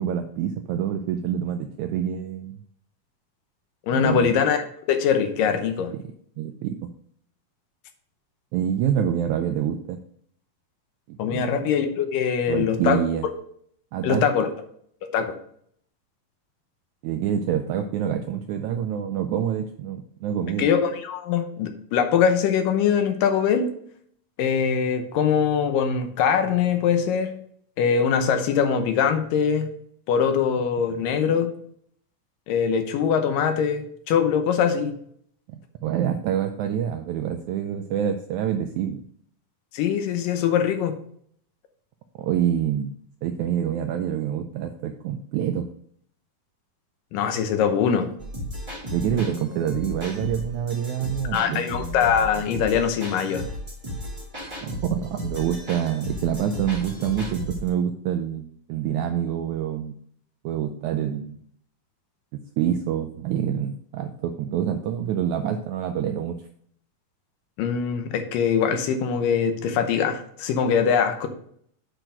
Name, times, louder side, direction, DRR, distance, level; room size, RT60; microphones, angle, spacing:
voice 1, 0.0-2.6 3.9-4.3 5.9-6.0 6.4-6.9 8.5-10.0 11.1-11.6 12.5-13.3 13.9-14.2 17.0-20.7 30.9-31.0 35.5-39.0 42.2-43.0 43.2-45.7 48.9-51.6 54.6-60.0 60.4-61.4 62.6-66.4, right 9 dB, 85° right, 6 dB, 1.7 m, -26 dB
voice 2, 3.9-5.9 11.2-13.0 14.0-14.5 15.1-15.4 20.6-23.7 24.4-27.3 27.8-29.7 30.1-31.5 32.5-34.9 39.7-41.0 47.1-48.1 51.3-53.5 67.6-71.3, left 7 dB, 80° left, 7 dB, 2.5 m, -22 dB
sound 1, 48.2-57.7, equal, 10° right, 1.8 m, -34 dB
7.9 x 4.5 x 5.0 m, 0.64 s
omnidirectional pair, 4.0 m